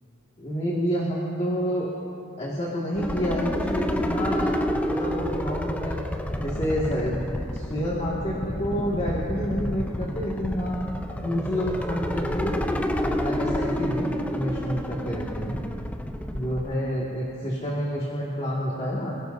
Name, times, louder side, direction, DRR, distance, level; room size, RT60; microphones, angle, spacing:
voice 1, 0.4-1.9 2.4-4.6 4.9-6.0 6.4-7.2 7.5-10.8 11.2-12.6 13.0-15.6 16.3-19.1, equal, 30° left, -5 dB, 2.0 m, -28 dB
sound 1, 3.0-16.7, equal, 5° left, 0.6 m, -29 dB
28.0 x 17.0 x 2.7 m, 2.9 s
head